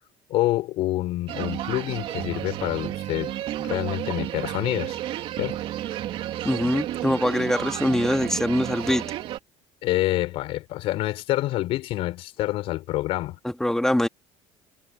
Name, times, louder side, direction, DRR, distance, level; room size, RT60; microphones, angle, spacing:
voice 1, 0.3-3.3 3.6-5.0 5.4-5.6 9.8-13.4, left 16 dB, 65° left, 6.2 m, -27 dB
sound 1, 1.3-9.4, right 13 dB, 60° right, 2.9 m, -32 dB
voice 2, 6.4-9.1 13.4-14.1, left 1 dB, 5° left, 2.1 m, -23 dB
supercardioid pair, 85°, 10 cm